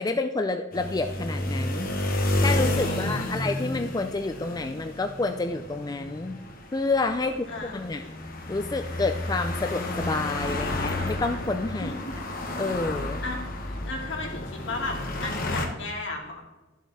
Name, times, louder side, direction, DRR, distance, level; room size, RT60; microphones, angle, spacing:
voice 1, 0.0-1.9 2.4-6.4 6.7-7.5 7.7-8.0 8.5-11.9 12.6-13.2, left 3 dB, 20° left, 7 dB, 0.4 m, -28 dB
sound 1, 0.7-15.7, left 1 dB, 45° left, 1.4 m, -31 dB
voice 2, 2.7-3.4 7.2-8.1 11.8-12.1 13.2-13.4 13.8-16.4, left 2 dB, 65° left, 0 dB, 2.4 m, -35 dB
12.0 x 7.3 x 4.2 m, 1.1 s
head